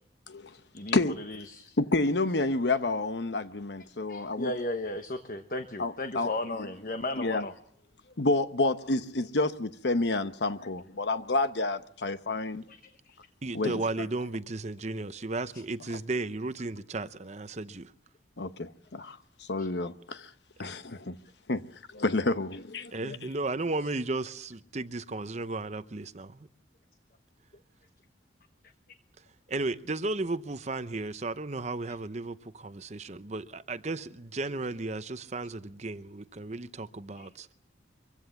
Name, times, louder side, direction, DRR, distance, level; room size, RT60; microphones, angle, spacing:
voice 1, 0.3-0.6 0.9-1.1 1.8-4.5 5.8-6.3 6.6-6.7 7.2-7.4 8.2-12.6 13.5-13.8 18.4-20.3 20.6-21.2 21.5-21.6 21.9-23.2, left 2 dB, 65° left, 1.0 m, -29 dB
voice 2, 1.2-1.7 4.1-7.5 12.7-12.8 13.1-13.2 19.6-19.7 37.2-37.3, left 2 dB, 50° left, 1.1 m, -35 dB
voice 3, 13.4-17.9 20.6-20.7 22.9-26.5 29.5-37.5, right 2 dB, 35° right, 0.8 m, -34 dB
24.0 x 15.5 x 7.1 m
head